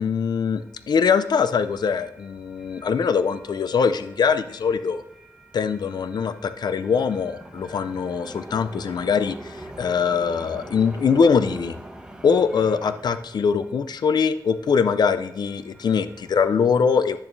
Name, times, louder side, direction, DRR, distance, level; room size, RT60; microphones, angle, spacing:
voice 1, 0.0-5.0 5.5-11.8 12.2-17.2, left 6 dB, 65° left, 11 dB, 0.4 m, -22 dB
sound 1, 0.6-16.5, right 1 dB, 10° right, 1.0 m, -45 dB
10.0 x 6.9 x 2.6 m, 0.84 s
cardioid pair, 75°, 8 cm